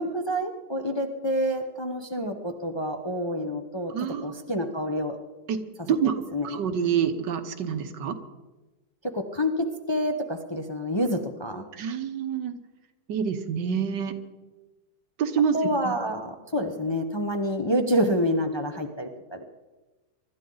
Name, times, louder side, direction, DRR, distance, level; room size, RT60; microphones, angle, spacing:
voice 1, 0.0-3.9 4.2-5.2 6.3-6.6 9.1-11.7 15.5-19.4, equal, 20° left, 4 dB, 0.7 m, -28 dB
voice 2, 3.9-4.4 5.5-5.6 5.9-6.2 6.4-8.2 11.7-12.6 13.1-14.1 15.2-15.6 15.8-15.9, right 7 dB, 85° right, 8 dB, 1.8 m, -27 dB
24.0 x 12.5 x 4.0 m, 1.2 s
omnidirectional pair, 1.8 m